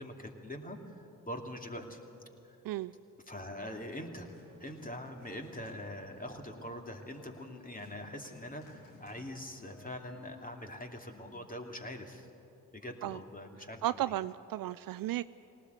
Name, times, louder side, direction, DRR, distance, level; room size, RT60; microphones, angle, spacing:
voice 1, 0.0-2.0 2.5-2.6 3.3-4.3 4.6-12.3 12.7-14.0, left 1 dB, 20° left, 3 dB, 2.7 m, -43 dB
Organ, 3.8-10.4, left 3 dB, 85° left, 2.7 m, -58 dB
voice 2, 13.8-15.2, right 14 dB, 55° right, 16 dB, 0.5 m, -34 dB
20.0 x 18.5 x 8.2 m, 2.9 s
hypercardioid pair, 45°, 42 cm